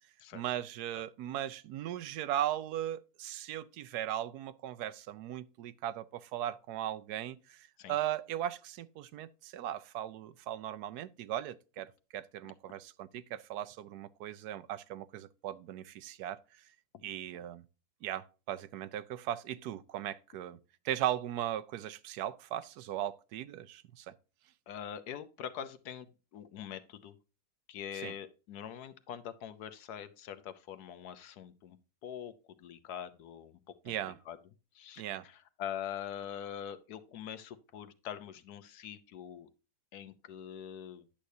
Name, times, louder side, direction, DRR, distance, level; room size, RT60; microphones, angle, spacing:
voice 1, 0.3-16.4 17.0-17.6 18.0-20.6 20.8-24.1 28.0-28.1 33.9-34.2 35.0-35.2, right 12 dB, 85° right, 1.2 m, -38 dB
voice 2, 24.7-27.2 27.7-31.8 32.0-34.4 34.7-39.5 39.9-41.0, left 9 dB, 80° left, 1.3 m, -44 dB
10.0 x 6.5 x 2.7 m
omnidirectional pair, 1.7 m